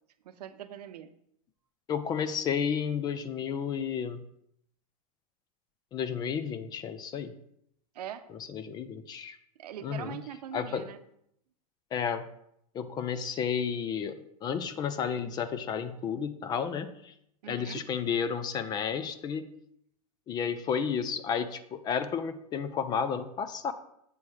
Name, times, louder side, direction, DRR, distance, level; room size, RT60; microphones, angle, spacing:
voice 1, 0.2-1.1 7.9-8.3 9.6-11.0 17.4-17.9, right 10 dB, 85° right, 11 dB, 0.7 m, -42 dB
voice 2, 1.9-4.2 5.9-7.3 8.5-9.4 9.8-10.2 10.5-10.9 11.9-12.3 12.7-17.1 17.5-19.5 20.3-23.7, left 7 dB, 20° left, 12 dB, 0.4 m, -32 dB
8.4 x 4.5 x 4.8 m, 0.74 s
supercardioid pair, 145°, 20 cm